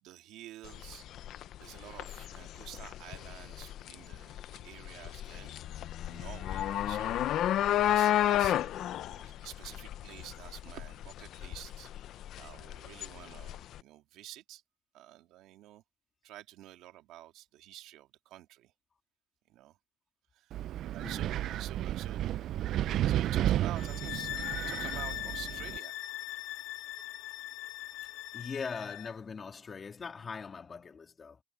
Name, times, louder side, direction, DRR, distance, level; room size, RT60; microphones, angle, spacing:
voice 1, 0.0-5.5 6.0-7.3 7.8-14.6 14.9-15.8 16.2-18.7 19.5-19.8 20.3-20.6 20.9-22.3 23.0-26.0, right 14 dB, 75° right, 2.5 m, -49 dB
sound 1, 0.6-13.8, left 12 dB, 60° left, 0.7 m, -32 dB
Wind, 20.5-25.8, right 12 dB, 55° right, 0.4 m, -32 dB
voice 2, 21.0-21.3 28.0-31.4, left 5 dB, 25° left, 2.8 m, -41 dB
sound 2, 23.8-29.1, left 15 dB, 80° left, 1.0 m, -40 dB
cardioid pair, 145°, 0 cm